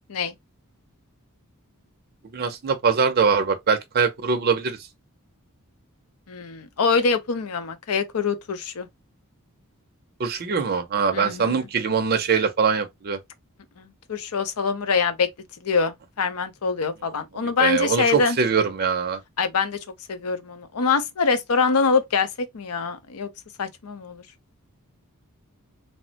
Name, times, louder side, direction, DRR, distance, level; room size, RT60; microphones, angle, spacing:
voice 1, 2.3-4.8 10.2-13.2 17.6-19.2, right 5 dB, 45° right, 0.5 m, -22 dB
voice 2, 6.3-8.9 11.1-11.7 13.8-15.3 15.6-18.4 19.4-19.8 20.1-23.3 23.6-24.2, left 5 dB, 70° left, 0.6 m, -24 dB
3.2 x 2.0 x 2.7 m
head